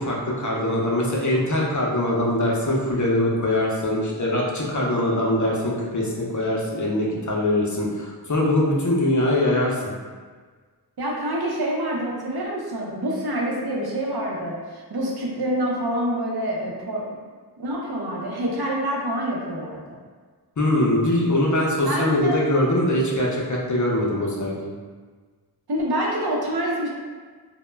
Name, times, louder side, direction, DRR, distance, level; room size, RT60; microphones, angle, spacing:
voice 1, 0.0-9.9 20.6-24.7, left 1 dB, 45° left, -3 dB, 0.5 m, -22 dB
voice 2, 11.0-17.1 17.6-19.8 21.8-22.4 25.7-26.9, right 1 dB, 60° right, -3 dB, 0.6 m, -26 dB
2.1 x 2.0 x 3.2 m, 1.5 s
wide cardioid pair, 40°, 42 cm